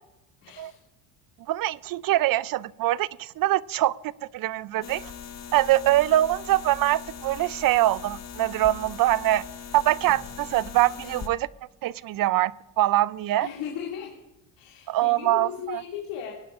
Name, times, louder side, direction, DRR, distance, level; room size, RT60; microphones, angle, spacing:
voice 1, 0.4-0.8 13.4-14.1 14.6-16.3, left 8 dB, 80° left, 2.5 m, -36 dB
voice 2, 1.5-3.9 4.3-5.1 5.5-9.4 9.7-11.5 11.8-13.5 14.9-15.8, right 15 dB, 50° right, 0.5 m, -23 dB
sound 1, 4.8-11.3, left 7 dB, 35° left, 1.2 m, -40 dB
sound 2, 10.1-13.6, right 1 dB, 10° left, 4.4 m, -57 dB
20.5 x 10.5 x 2.5 m
cardioid pair, 95°, 45 cm